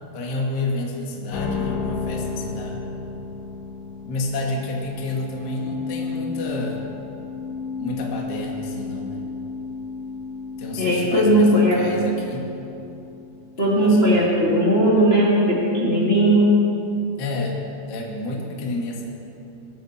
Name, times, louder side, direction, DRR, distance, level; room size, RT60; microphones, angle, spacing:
voice 1, 0.1-2.9 4.0-6.8 7.8-9.2 10.6-12.5 13.6-14.2 17.2-17.6 17.8-19.1, left 2 dB, 45° left, -1 dB, 1.4 m, -30 dB
sound 1, 1.3-13.6, left 5 dB, 80° left, 3.7 m, -33 dB
voice 2, 10.8-11.8 13.6-16.5, right 1 dB, 25° left, -6 dB, 1.3 m, -17 dB
21.0 x 14.0 x 4.4 m, 2.8 s
omnidirectional pair, 5.3 m